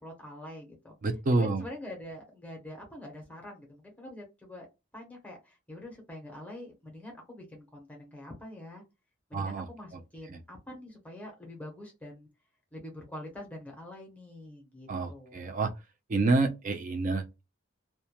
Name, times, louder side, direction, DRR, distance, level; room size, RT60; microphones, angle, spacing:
voice 1, 0.0-1.0 1.4-4.7 4.9-8.8 9.3-12.3 12.7-15.5, left 1 dB, 5° left, 0.6 m, -45 dB
voice 2, 1.0-1.6 9.3-10.0 10.3-10.4 14.9-15.7 16.1-17.4, right 3 dB, 40° right, 0.4 m, -28 dB
2.2 x 2.0 x 2.8 m
head